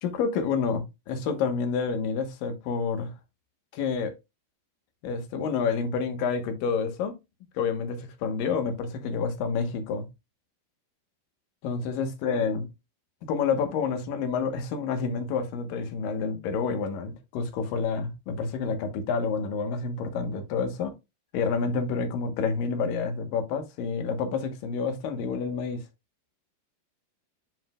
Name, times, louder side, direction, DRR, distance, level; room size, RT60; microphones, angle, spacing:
voice 1, 0.0-3.1 3.7-4.1 5.0-7.1 7.5-10.1 11.6-12.7 13.2-20.9 21.3-25.8, left 5 dB, 70° left, 2.6 m, -29 dB
9.6 x 5.2 x 2.2 m
omnidirectional pair, 4.4 m